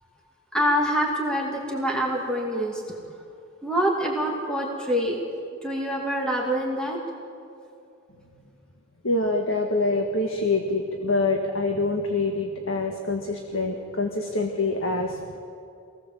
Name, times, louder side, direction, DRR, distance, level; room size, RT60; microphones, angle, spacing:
voice 1, 0.5-2.8 3.6-5.2 5.6-7.0, equal, 5° left, -1 dB, 2.5 m, -25 dB
voice 2, 9.0-15.4, left 2 dB, 70° left, 2 dB, 1.7 m, -25 dB
26.0 x 18.5 x 7.6 m, 2.6 s
head